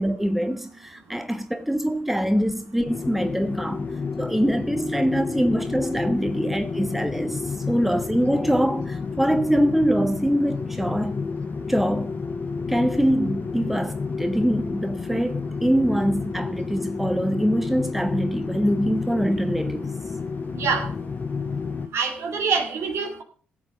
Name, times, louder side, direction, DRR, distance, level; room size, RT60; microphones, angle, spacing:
voice 1, 0.0-3.9 4.2-11.3 11.7-12.2 12.7-19.9, equal, 5° right, 1.3 m, -24 dB
sound 1, 2.9-21.9, left 4 dB, 40° left, 0.8 m, -30 dB
voice 2, 20.6-20.9 21.9-23.2, right 5 dB, 60° right, 2.1 m, -25 dB
17.5 x 7.2 x 4.9 m
hypercardioid pair, 40°, 5 cm